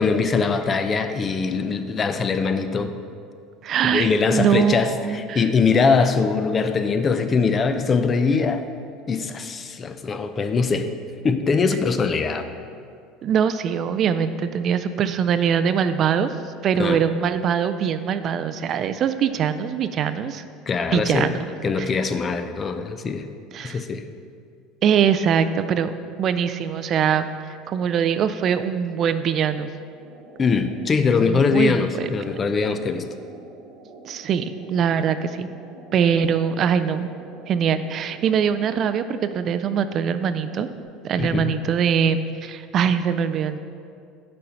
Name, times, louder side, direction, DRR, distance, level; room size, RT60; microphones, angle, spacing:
voice 1, 0.0-3.0 3.8-8.6 9.1-10.9 11.2-12.5 16.8-17.0 20.7-21.3 21.6-23.2 23.6-24.0 30.4-33.1 41.2-41.5, left 5 dB, 30° left, 9 dB, 0.4 m, -22 dB
voice 2, 3.6-5.5 13.2-16.3 16.6-20.4 20.9-21.4 21.8-21.9 23.5-23.8 24.8-25.9 26.2-29.7 31.2-32.1 34.1-35.5 35.9-37.1 37.5-40.7 41.0-43.6, right 7 dB, 45° right, 11 dB, 0.3 m, -22 dB
sound 1, 30.0-40.8, right 3 dB, 80° right, 1.0 m, -46 dB
6.3 x 4.3 x 5.5 m, 2.3 s
supercardioid pair, 100°, 0 cm